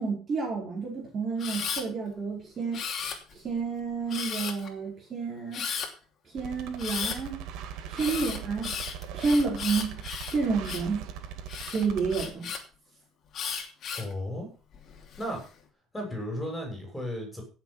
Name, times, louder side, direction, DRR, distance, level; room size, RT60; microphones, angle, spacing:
voice 1, 0.0-2.8 3.3-5.7 6.3-7.4 7.9-8.8 9.1-10.0 10.3-11.1 11.7-12.5, right 4 dB, 30° right, -1 dB, 4.6 m, -30 dB
Camera, 1.4-1.8 2.7-3.5 4.1-4.7 5.5-5.9 6.8-7.2 8.0-10.9 11.5-12.6 13.3-14.1 14.7-15.3, left 7 dB, 40° left, 2.9 m, -35 dB
sound 1, 6.4-12.3, right 8 dB, 70° right, 2.0 m, -40 dB
voice 2, 13.9-14.5 15.2-15.4 15.9-17.4, left 1 dB, 10° left, 2 dB, 6.8 m, -34 dB
16.5 x 7.2 x 5.7 m, 0.36 s
cardioid pair, 150°, 0 cm